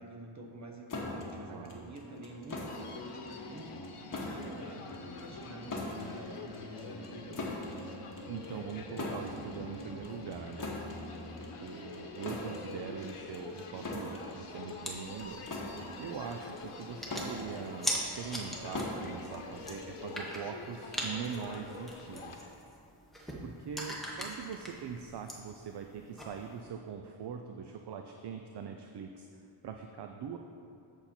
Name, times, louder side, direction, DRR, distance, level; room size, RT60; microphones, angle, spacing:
voice 1, 0.0-7.4 12.2-12.5 16.8-17.1 24.0-24.2, right 1 dB, 35° right, 2 dB, 1.0 m, -48 dB
sound 1, 0.9-20.3, left 2 dB, 40° left, 1.2 m, -42 dB
voice 2, 1.5-1.9 8.3-10.7 11.4-22.4 23.4-29.3 29.6-30.4, right 7 dB, 55° right, 5 dB, 0.5 m, -42 dB
Human voice, 2.7-22.5, left 3 dB, 85° left, 0.9 m, -46 dB
sound 2, 14.8-26.6, equal, ahead, 1.0 m, -42 dB
8.0 x 6.9 x 4.3 m, 2.5 s
wide cardioid pair, 140°, 50 cm